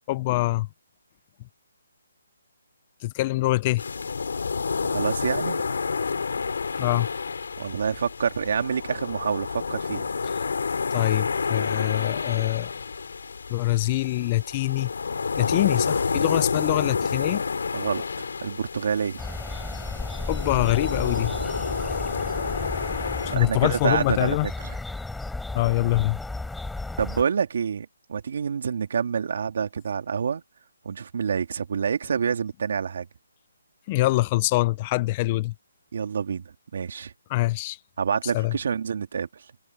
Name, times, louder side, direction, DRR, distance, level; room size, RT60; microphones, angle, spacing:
voice 1, 0.1-0.7 3.0-3.8 6.8-7.1 10.2-10.4 10.9-12.7 13.5-14.9 15.4-17.4 20.3-21.3 23.2-24.5 25.5-26.2 33.9-35.5 37.3-37.8 38.3-38.5, left 19 dB, 25° left, 0.7 m, -24 dB
sound 1, 3.8-23.4, left 5 dB, 70° left, 3.7 m, -29 dB
voice 2, 4.8-5.6 7.6-10.1 17.7-19.2 23.3-24.8 27.0-30.4 30.8-33.1 35.9-36.4 36.7-37.1 38.0-39.3, right 6 dB, 55° right, 3.1 m, -27 dB
sound 2, 19.2-27.2, left 2 dB, 5° left, 6.8 m, -34 dB
hypercardioid pair, 160°, 0 cm